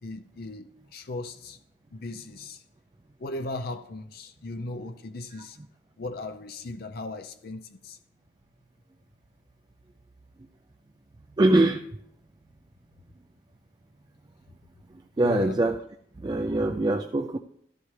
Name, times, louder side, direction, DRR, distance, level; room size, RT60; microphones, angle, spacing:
voice 1, 0.0-1.6 1.9-2.6 3.2-5.6 6.0-8.0 15.2-15.6, left 2 dB, 55° left, 9 dB, 0.5 m, -37 dB
voice 2, 11.4-11.9 15.2-15.8 16.2-17.4, right 2 dB, 25° right, 4 dB, 0.4 m, -23 dB
13.0 x 12.0 x 3.2 m, 0.71 s
head